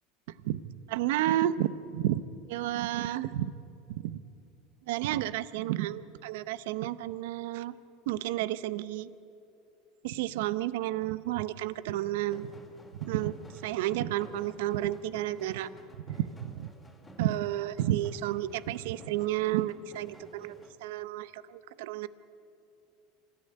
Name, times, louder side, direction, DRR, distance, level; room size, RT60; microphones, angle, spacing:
voice 1, 0.9-2.2 2.5-3.5 3.9-4.2 4.9-7.7 8.1-9.1 10.0-12.5 13.0-15.7 16.0-16.7 17.2-22.1, right 13 dB, 75° right, 16 dB, 0.7 m, -31 dB
sound 1, 12.2-20.7, equal, 10° left, 3.2 m, -53 dB
26.0 x 14.0 x 9.8 m, 2.7 s
supercardioid pair, 115°, 0 cm